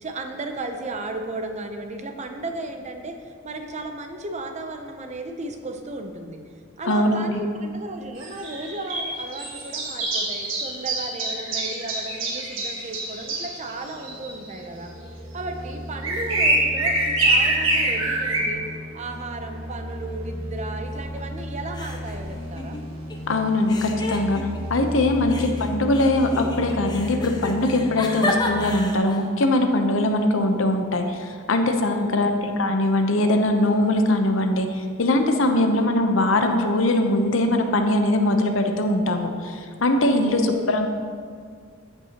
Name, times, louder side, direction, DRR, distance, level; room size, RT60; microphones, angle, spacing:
voice 1, 0.0-3.2 3.4-6.4 6.8-14.9 15.3-18.6 18.9-22.8 25.1-25.3 31.8-32.3 35.4-35.7 40.1-40.7, right 2 dB, 35° right, 5 dB, 0.7 m, -34 dB
voice 2, 6.8-7.4 23.3-24.4 24.7-40.9, left 1 dB, 70° left, 5 dB, 0.8 m, -21 dB
sound 1, 8.2-14.3 15.2-15.3 16.0-18.5, right 2 dB, 70° right, 1.6 m, -25 dB
sound 2, 13.6-28.8, equal, 90° right, 1.6 m, -35 dB
sound 3, 20.9-21.4 21.7-23.2 23.7-24.8 25.3-29.3, left 2 dB, 20° left, 0.7 m, -32 dB
14.5 x 5.7 x 2.9 m, 2.1 s
head